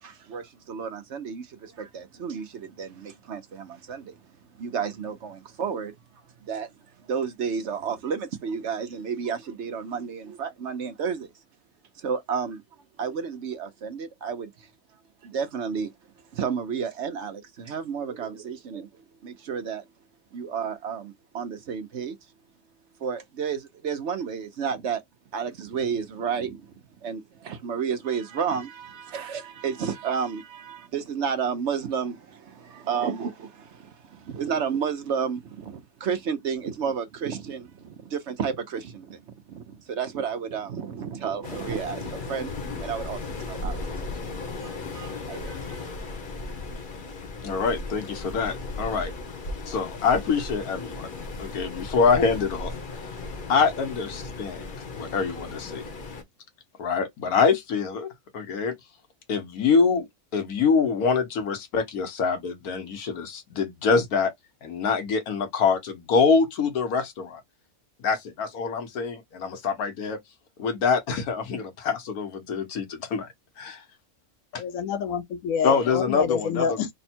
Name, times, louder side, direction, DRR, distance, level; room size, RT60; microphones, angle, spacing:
voice 1, 0.0-4.2 4.6-5.9 6.4-6.7 7.1-11.3 12.0-12.6 13.0-14.7 15.2-15.9 16.3-19.8 20.3-22.2 23.0-25.0 25.3-44.2 44.6-45.9, right 6 dB, 60° right, 0.9 m, -32 dB
Waves surf, 41.4-56.2, left 3 dB, 40° left, 0.9 m, -36 dB
voice 2, 47.4-49.1 49.6-51.1 51.4-52.7 53.5-55.8 56.8-58.7 59.3-60.0 60.3-64.3 64.6-67.4 68.0-70.2 70.6-73.3 73.6-73.8 74.5-74.6 75.6-76.8, left 5 dB, 90° left, 1.5 m, -25 dB
voice 3, 74.5-76.9, left 7 dB, 70° left, 1.0 m, -27 dB
3.4 x 2.2 x 4.3 m
omnidirectional pair, 1.5 m